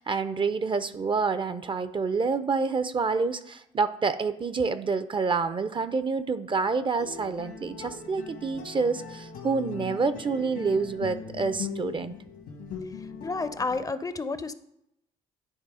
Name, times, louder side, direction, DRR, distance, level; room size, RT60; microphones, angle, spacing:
voice 1, 0.0-12.1, right 4 dB, 30° right, 13 dB, 0.5 m, -28 dB
sound 1, 7.0-13.9, left 6 dB, 80° left, 1.6 m, -40 dB
voice 2, 13.2-14.5, left 3 dB, 20° left, 12 dB, 0.5 m, -30 dB
10.0 x 3.4 x 4.8 m, 0.80 s
supercardioid pair, 60°, 16 cm